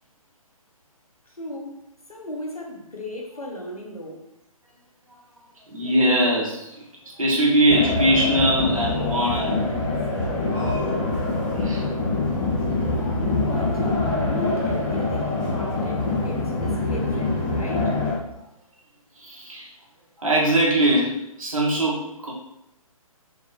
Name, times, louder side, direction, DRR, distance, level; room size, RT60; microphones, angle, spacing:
voice 1, 1.3-1.8 2.1-4.3 13.4-13.9 14.2-18.0, left 1 dB, 85° left, 0 dB, 0.9 m, -36 dB
voice 2, 5.7-6.7 7.0-9.6 11.6-11.9 19.2-19.7 20.2-22.3, right 1 dB, 70° right, -4 dB, 1.0 m, -21 dB
sound 1, 7.7-18.2, left 2 dB, 10° left, 0.3 m, -24 dB
3.3 x 2.9 x 3.0 m, 0.83 s
figure-of-eight pair, 135°, 18 cm